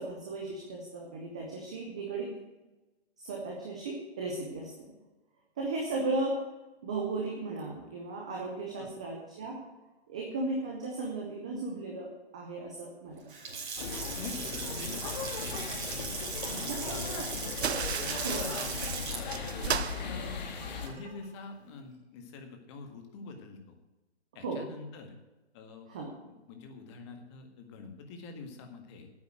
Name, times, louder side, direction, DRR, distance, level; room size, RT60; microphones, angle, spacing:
voice 1, 0.0-2.3 3.2-4.9 5.6-6.4 6.8-9.6 10.1-13.2 13.5-13.6 16.4-17.3 17.6-18.6 24.4-24.6 25.9-26.1, right 3 dB, 5° right, -1 dB, 0.4 m, -36 dB
Water tap faucet / Sink (filling or washing) / Splash splatter, 13.2-21.3, right 4 dB, 50° right, 3.7 m, -39 dB
sound 1, 13.8-20.9, left 6 dB, 40° left, 1.7 m, -38 dB
voice 2, 14.2-16.1 16.5-16.7 17.2-17.6 18.0-18.8 19.1-20.4 20.8-23.7 24.4-25.2 25.5-25.9 26.2-29.1, left 4 dB, 25° left, 5 dB, 1.8 m, -46 dB
sound 2, 17.6-21.0, right 7 dB, 75° right, 0.7 m, -36 dB
9.8 x 8.4 x 9.0 m, 1.1 s
figure-of-eight pair, 140°, 33 cm